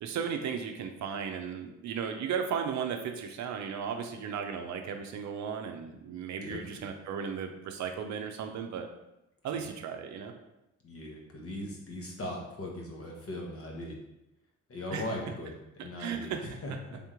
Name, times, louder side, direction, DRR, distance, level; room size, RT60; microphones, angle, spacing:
voice 1, 0.0-8.9 9.4-10.3 14.9-15.1 15.8-16.4, right 7 dB, 70° right, 5 dB, 0.6 m, -35 dB
voice 2, 6.4-6.9 9.5-9.7 10.8-14.0 14.7-17.0, left 1 dB, 50° left, -1 dB, 1.1 m, -39 dB
3.5 x 3.0 x 3.6 m, 0.90 s
cardioid pair, 90°, 30 cm